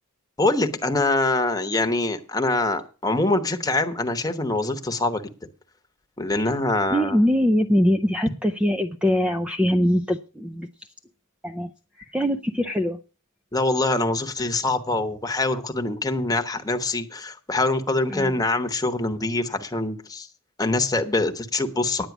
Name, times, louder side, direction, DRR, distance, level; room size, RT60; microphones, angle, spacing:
voice 1, 0.4-5.2 6.2-7.2 13.5-20.3 20.6-22.1, left 2 dB, 15° left, 6 dB, 1.0 m, -24 dB
voice 2, 6.9-10.7 11.4-11.7 12.0-13.0 18.1-18.4, equal, 5° right, 7 dB, 0.5 m, -22 dB
10.0 x 9.3 x 6.0 m, 0.35 s
head